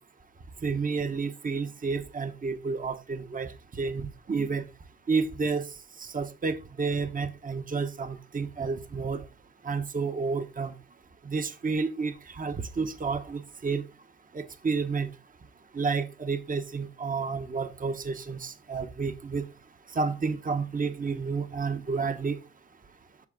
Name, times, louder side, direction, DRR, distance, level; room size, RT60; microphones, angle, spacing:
voice 1, 0.6-4.7 5.1-5.7 6.0-9.2 9.6-10.7 11.2-13.8 14.3-15.1 15.7-19.5 19.9-22.4, right 4 dB, 25° right, 1.0 m, -30 dB
8.0 x 6.4 x 3.6 m
cardioid pair, 90°, 30 cm